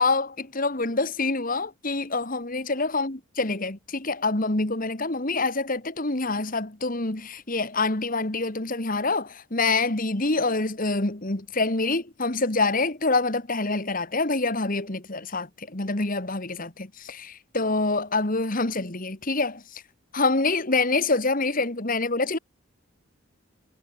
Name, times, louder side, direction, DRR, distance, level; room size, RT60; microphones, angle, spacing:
voice 1, 0.0-19.8 20.1-22.4, left 3 dB, 40° left, 1.8 m, -26 dB
head